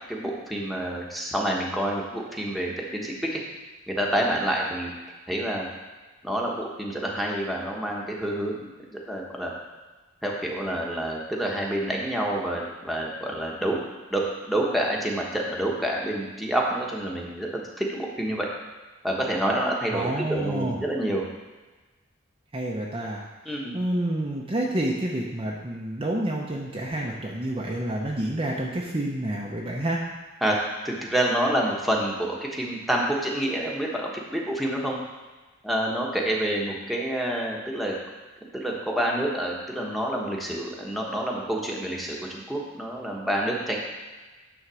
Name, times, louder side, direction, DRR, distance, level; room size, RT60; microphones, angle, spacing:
voice 1, 0.1-3.4 3.9-4.9 5.3-5.7 6.2-8.7 9.1-9.5 10.2-13.8 14.1-18.5 19.0-21.2 23.4-23.8 30.4-30.6 30.8-35.0 35.6-38.0 38.5-43.8, right 1 dB, ahead, -3 dB, 1.2 m, -28 dB
voice 2, 19.9-20.8 22.5-23.2 23.7-30.0, right 1 dB, 25° right, -2 dB, 0.8 m, -28 dB
9.8 x 4.0 x 6.2 m, 1.3 s
head